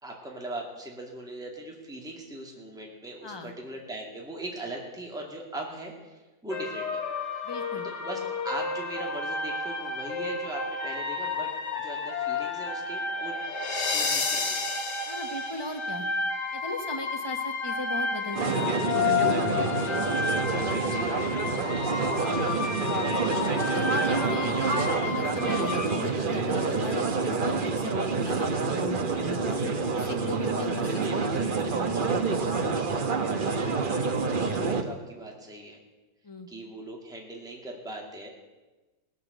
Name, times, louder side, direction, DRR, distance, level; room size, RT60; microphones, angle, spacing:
voice 1, 0.0-7.0 7.8-8.2 8.4-11.5 11.8-13.4 13.9-14.6 19.4-22.1 34.2-35.8 36.5-38.3, right 1 dB, ahead, 0 dB, 2.0 m, -40 dB
voice 2, 3.2-3.5 7.4-7.9 15.1-16.1 16.5-19.0 22.6-22.9 23.4-31.5 31.8-32.7 36.2-36.5, left 2 dB, 15° left, 4 dB, 0.9 m, -38 dB
sound 1, 6.5-25.9, left 4 dB, 60° left, 2.2 m, -31 dB
sound 2, 18.3-34.8, right 4 dB, 40° right, 0.8 m, -27 dB
19.0 x 6.8 x 7.9 m, 1.2 s
omnidirectional pair, 2.1 m